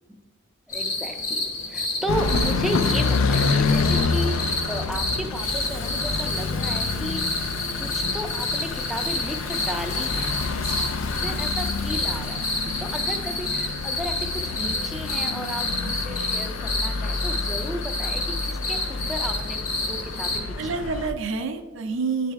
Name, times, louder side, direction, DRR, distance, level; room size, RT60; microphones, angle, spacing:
sound 1, 0.7-20.4, left 2 dB, 40° left, 0.9 m, -29 dB
voice 1, 0.7-7.2 7.8-10.3 11.1-12.5 12.8-20.6, equal, ahead, 3 dB, 0.4 m, -34 dB
sound 2, 2.1-21.1, left 4 dB, 85° left, 0.4 m, -28 dB
Water tap faucet / Bathtub (filling or washing), 4.2-4.3 4.7-17.1 17.8-17.9 18.4-18.5, left 2 dB, 65° left, 1.6 m, -43 dB
voice 2, 10.6-10.9 11.2-11.4 12.6-12.7 20.6-22.3, right 4 dB, 70° right, 6 dB, 0.6 m, -29 dB
9.9 x 3.3 x 3.4 m, 1.4 s
head